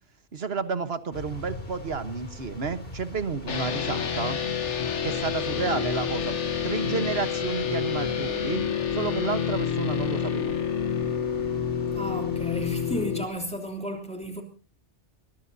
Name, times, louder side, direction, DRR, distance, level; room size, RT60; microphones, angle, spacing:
voice 1, 0.3-4.4 5.0-8.6 8.9-10.5, right 5 dB, 60° right, 11 dB, 1.5 m, -31 dB
sound 1, 1.1-13.1, left 2 dB, 55° left, 3.3 m, -43 dB
sound 2, 3.5-13.2, left 7 dB, 85° left, 1.6 m, -28 dB
voice 2, 11.9-14.4, equal, 5° left, 3 dB, 3.1 m, -33 dB
22.5 x 20.5 x 2.8 m, 0.38 s
omnidirectional pair, 1.2 m